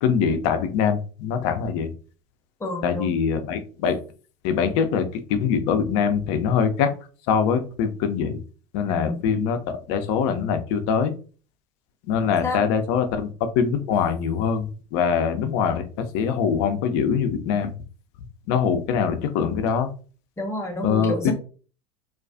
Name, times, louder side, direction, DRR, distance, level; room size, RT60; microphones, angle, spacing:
voice 1, 0.0-1.9 2.8-4.0 4.4-6.9 7.3-8.4 8.7-11.1 12.1-17.7 18.5-19.9 20.8-21.3, left 7 dB, 55° left, 8 dB, 0.5 m, -23 dB
voice 2, 2.6-3.1 8.9-9.2 12.2-12.6 20.4-21.3, left 1 dB, 15° left, 3 dB, 0.8 m, -29 dB
2.4 x 2.3 x 2.4 m, 0.38 s
hypercardioid pair, 75°, 18 cm